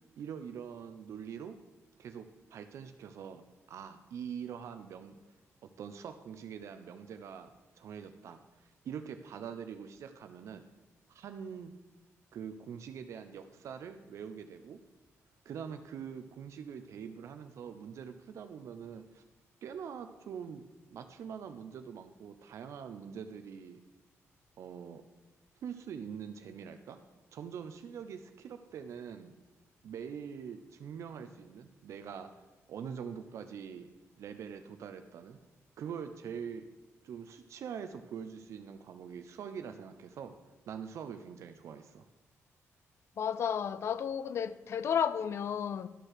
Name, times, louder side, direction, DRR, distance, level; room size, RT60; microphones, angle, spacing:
voice 1, 0.2-1.6 2.0-3.4 3.7-5.2 5.6-7.5 7.7-10.6 11.1-11.7 12.3-14.8 15.4-19.2 19.6-20.6 20.9-23.8 24.6-25.0 25.6-27.0 27.3-29.3 29.8-32.3 32.7-33.9 34.2-35.4 35.8-36.7 37.0-40.3 40.7-42.0, right 7 dB, 70° right, 0.6 m, -44 dB
voice 2, 43.2-45.9, left 8 dB, 55° left, 0.4 m, -32 dB
11.5 x 4.5 x 6.5 m
cardioid pair, 135°, 5 cm